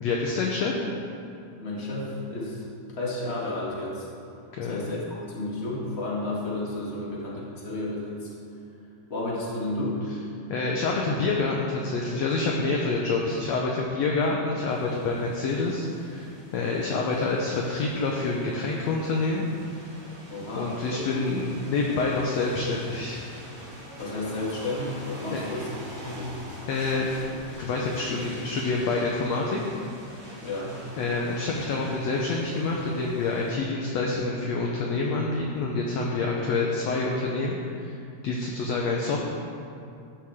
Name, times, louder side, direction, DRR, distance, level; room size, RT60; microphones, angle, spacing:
voice 1, 0.0-0.7 4.5-4.9 10.5-19.5 20.6-23.2 25.3-25.4 26.7-29.6 31.0-38.0 38.2-39.2, left 3 dB, 65° left, -1 dB, 1.8 m, -27 dB
voice 2, 1.6-4.1 4.6-8.3 9.1-10.0 20.3-21.4 24.0-25.7 26.0-26.3 30.4-30.8, left 2 dB, 20° left, -6 dB, 2.1 m, -32 dB
sound 1, 14.7-33.5, equal, 25° right, 2.0 m, -44 dB
13.5 x 11.0 x 3.7 m, 2.5 s
omnidirectional pair, 3.8 m